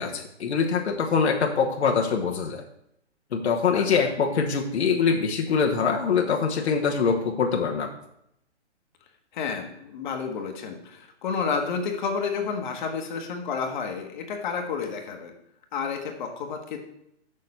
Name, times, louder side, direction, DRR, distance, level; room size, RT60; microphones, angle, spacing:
voice 1, 0.0-2.6 3.3-7.9, left 5 dB, 65° left, 1 dB, 1.1 m, -24 dB
voice 2, 3.7-4.1 9.3-15.3 15.7-16.8, left 5 dB, 40° left, 3 dB, 1.2 m, -30 dB
6.7 x 6.3 x 4.2 m, 0.77 s
hypercardioid pair, 140°, 36 cm